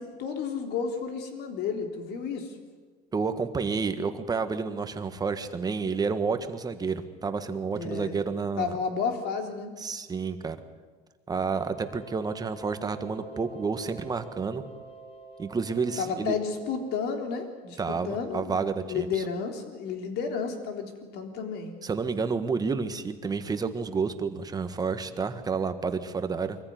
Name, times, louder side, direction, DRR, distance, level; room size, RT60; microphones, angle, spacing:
voice 1, 0.0-2.5 7.7-8.2 8.6-9.7 16.0-21.7, left 6 dB, 60° left, 5 dB, 3.6 m, -32 dB
voice 2, 3.1-8.7 9.8-10.6 11.3-14.6 15.4-16.4 17.8-19.2 21.8-26.6, right 5 dB, 20° right, 9 dB, 1.6 m, -30 dB
sound 1, 11.3-17.9, right 3 dB, 30° left, 3.3 m, -48 dB
23.5 x 14.5 x 9.5 m, 1.5 s
cardioid pair, 125°, 19 cm